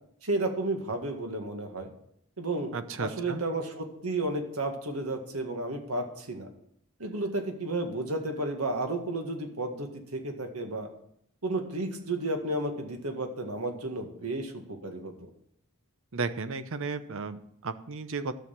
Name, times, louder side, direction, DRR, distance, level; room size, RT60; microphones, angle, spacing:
voice 1, 0.2-1.9 2.4-2.7 3.0-6.5 7.0-10.9 11.4-15.3, right 2 dB, 85° right, 4 dB, 1.9 m, -32 dB
voice 2, 2.7-3.4 16.1-18.3, right 4 dB, 65° right, 12 dB, 0.8 m, -34 dB
12.5 x 6.5 x 7.3 m, 0.73 s
head